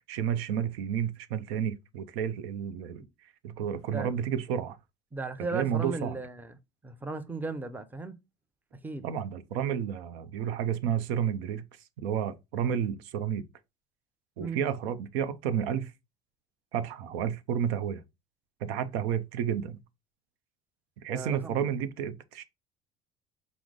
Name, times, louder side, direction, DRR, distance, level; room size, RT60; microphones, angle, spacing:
voice 1, 0.1-3.0 3.4-4.8 5.5-6.2 9.0-11.6 12.0-13.4 14.4-15.9 16.7-18.0 18.6-19.8 21.0-22.4, right 8 dB, 70° right, 0.6 m, -31 dB
voice 2, 5.1-6.5 6.8-8.1 8.8-9.1 14.4-14.6 21.1-21.7, right 3 dB, 5° right, 0.6 m, -36 dB
5.9 x 2.0 x 3.6 m
figure-of-eight pair, 60°, 32 cm